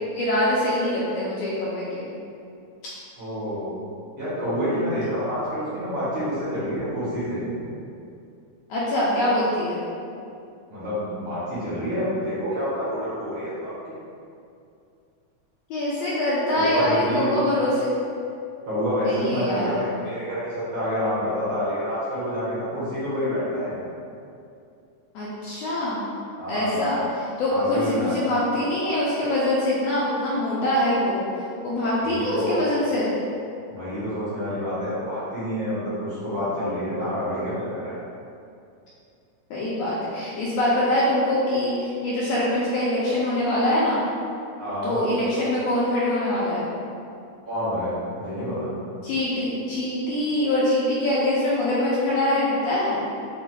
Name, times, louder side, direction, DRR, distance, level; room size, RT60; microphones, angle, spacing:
voice 1, 0.0-2.0 8.7-9.8 15.7-18.0 19.0-19.8 25.1-26.0 26.5-31.3 31.6-33.2 39.5-44.0 44.8-46.7 49.0-53.0, left 1 dB, 80° left, -8 dB, 1.6 m, -24 dB
voice 2, 3.2-3.7 4.2-7.4 10.7-13.7 16.5-17.3 18.7-23.8 26.4-26.9 27.5-28.2 32.0-32.7 33.7-38.0 44.6-45.0 47.5-48.7, equal, 55° right, -13 dB, 1.8 m, -28 dB
6.1 x 2.5 x 2.3 m, 2.5 s
omnidirectional pair, 3.4 m